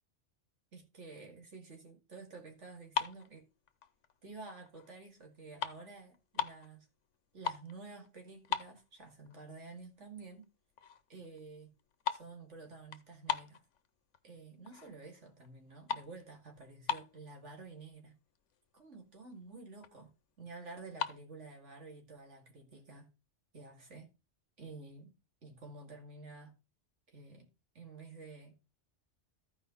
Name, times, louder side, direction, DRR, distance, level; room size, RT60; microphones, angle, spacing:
voice 1, 0.7-3.4 4.2-6.9 7.3-10.5 11.1-11.7 12.1-13.6 14.2-18.2 18.7-23.1 23.5-24.1 24.6-25.2 25.4-26.5 27.1-28.6, right 3 dB, 80° right, 2.6 m, -51 dB
sound 1, 2.8-4.2 4.7-4.9 5.2-6.7 7.1-7.8 8.0-8.1 8.4-9.3 9.7-9.8 10.4-10.5 10.8-11.1 11.4-14.2 14.7-15.1 15.4-17.4 18.0-18.1 18.3-18.6 19.0-19.1 19.3-20.0 20.8-21.2, left 8 dB, 85° left, 1.1 m, -39 dB
14.5 x 4.9 x 3.9 m
omnidirectional pair, 1.2 m